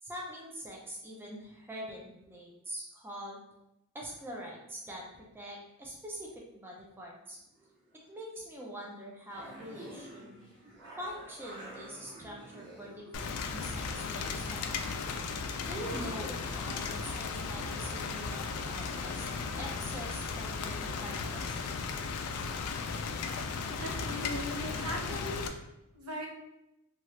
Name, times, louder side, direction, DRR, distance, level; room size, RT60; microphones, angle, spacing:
voice 1, 0.0-3.4 3.9-7.4 8.1-10.4 11.0-14.8 15.7-19.3 19.6-21.6, equal, 10° right, -2 dB, 0.4 m, -44 dB
sound 1, 7.5-8.0 8.8-8.9 9.3-13.1 13.5-14.7 15.0-16.3 18.1-18.2 18.6-18.7, right 1 dB, 55° right, 1.3 m, -49 dB
Rain, 13.1-25.5, left 4 dB, 80° left, 0.3 m, -36 dB
voice 2, 23.7-25.4 25.9-26.3, equal, 75° right, 0 dB, 0.7 m, -38 dB
2.9 x 2.3 x 3.1 m, 0.90 s
head